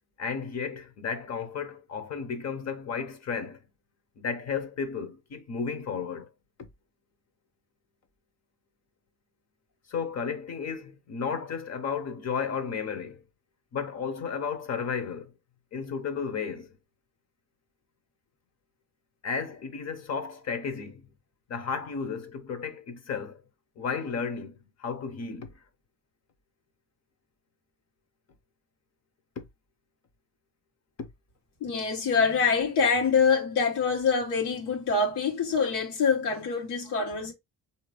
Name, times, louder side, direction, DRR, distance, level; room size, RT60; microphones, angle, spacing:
voice 1, 0.2-3.6 4.2-6.3 6.6-6.7 9.9-13.2 13.7-15.3 15.7-16.7 19.2-21.0 21.5-23.4 23.8-25.5, left 6 dB, 45° left, 0.8 m, -33 dB
voice 2, 31.6-37.3, left 5 dB, 90° left, 1.4 m, -25 dB
4.5 x 2.8 x 3.2 m
cardioid pair, 175°, 39 cm